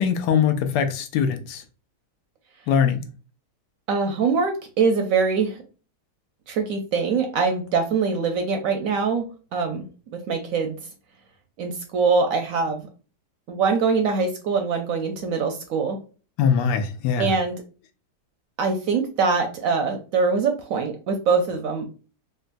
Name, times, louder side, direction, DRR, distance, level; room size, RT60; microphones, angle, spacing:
voice 1, 0.0-1.6 2.7-3.1 16.4-17.4, left 7 dB, 85° left, 1.2 m, -22 dB
voice 2, 3.9-5.6 6.5-9.3 9.5-9.9 10.1-10.8 11.6-12.9 13.5-16.0 17.2-17.6 18.6-21.8, right 5 dB, 70° right, 0.8 m, -23 dB
3.7 x 2.2 x 2.5 m
omnidirectional pair, 1.8 m